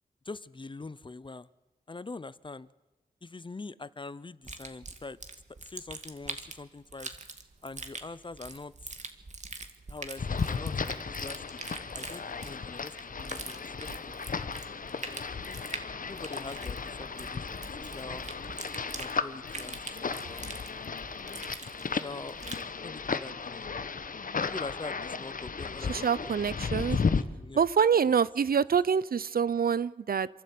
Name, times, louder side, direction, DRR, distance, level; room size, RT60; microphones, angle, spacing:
voice 1, 0.2-1.5 1.9-2.7 3.2-5.2 5.6-7.1 7.6-8.7 9.9-11.4 11.9-14.2 15.1-15.6 16.0-18.3 19.0-20.6 21.9-22.4 22.8-23.7 24.4-26.3 26.6-27.6 28.1-28.2, left 3 dB, 30° left, 18 dB, 0.7 m, -44 dB
sound 1, 4.4-22.7, right 3 dB, 45° right, 2.1 m, -44 dB
sound 2, 10.2-27.2, left 5 dB, 60° left, 1.1 m, -35 dB
voice 2, 25.9-27.0 27.6-30.3, right 7 dB, 65° right, 19 dB, 0.6 m, -26 dB
27.5 x 12.0 x 8.4 m, 1.1 s
cardioid pair, 65°, 16 cm